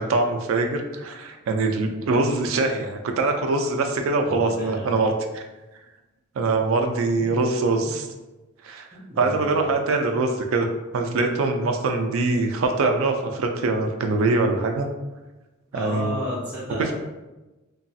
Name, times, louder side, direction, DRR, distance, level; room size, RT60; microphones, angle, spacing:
voice 1, 0.0-5.4 6.4-8.1 8.6-8.9 9.2-10.7 10.9-14.9 15.7-16.2, right 3 dB, 85° right, 5 dB, 0.3 m, -23 dB
voice 2, 4.2-4.9 7.8-8.0 8.9-9.7 15.7-16.9, equal, 5° right, -8 dB, 0.6 m, -33 dB
3.1 x 2.3 x 2.6 m, 1.1 s
head